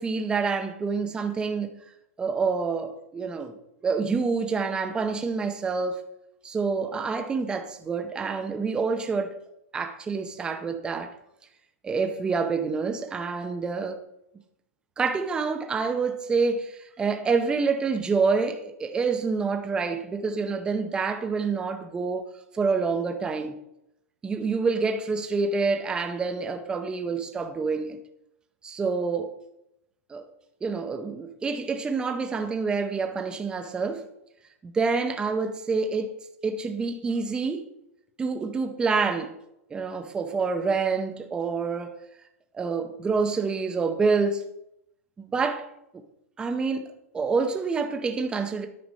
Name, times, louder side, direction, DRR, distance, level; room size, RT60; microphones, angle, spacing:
voice 1, 0.0-1.8 2.2-3.5 3.8-6.0 6.4-9.4 9.7-11.1 11.8-14.0 15.0-22.2 22.5-23.6 24.2-28.0 28.6-29.3 30.1-30.3 30.6-34.1 34.6-36.1 36.4-37.7 38.2-39.3 39.7-42.0 42.5-44.5 45.2-45.7 46.4-48.7, right 4 dB, 10° right, 0.7 m, -27 dB
9.7 x 5.7 x 5.2 m
hypercardioid pair, 150°, 8 cm